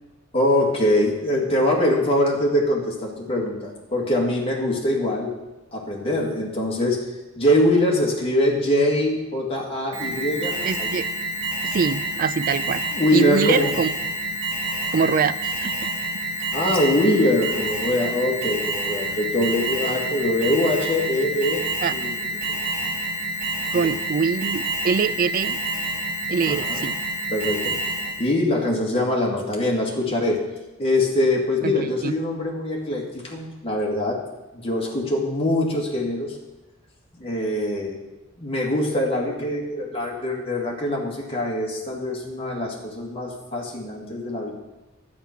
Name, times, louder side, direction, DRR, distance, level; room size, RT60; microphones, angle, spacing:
voice 1, 0.3-5.4 5.7-7.1 7.4-10.9 12.9-13.7 16.5-21.6 21.9-22.2 23.7-23.9 26.4-26.8 27.3-27.8 28.2-30.4 30.8-34.2 34.6-36.4 37.1-38.0 38.4-44.5, left 1 dB, 30° left, -1 dB, 2.1 m, -23 dB
Alarm, 9.9-28.3, right 1 dB, 85° right, 3.0 m, -28 dB
voice 2, 10.6-11.1 11.6-12.8 13.1-13.9 14.9-15.9 21.8-21.9 23.7-25.6 26.3-27.0 31.6-31.8 32.0-32.1, right 5 dB, 45° right, 15 dB, 0.4 m, -23 dB
11.0 x 8.7 x 5.9 m, 1.0 s
head